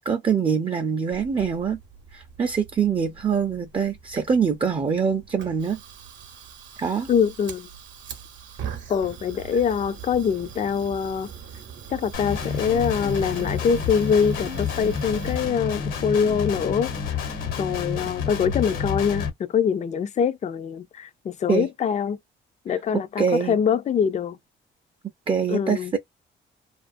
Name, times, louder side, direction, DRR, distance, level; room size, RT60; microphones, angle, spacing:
voice 1, 0.0-1.8 2.1-5.8 6.8-7.1 21.5-21.7 22.9-23.6 25.3-26.0, right 6 dB, 25° right, 0.4 m, -24 dB
Fire, 1.1-15.4, right 7 dB, 70° right, 0.7 m, -42 dB
voice 2, 7.1-7.7 8.9-11.3 11.9-16.9 17.2-17.3 17.6-22.2 22.7-24.4 25.5-25.9, left 7 dB, 35° left, 0.4 m, -24 dB
Guitar, 12.1-19.3, left 6 dB, 80° left, 1.1 m, -29 dB
2.5 x 2.4 x 2.5 m
cardioid pair, 90°, 20 cm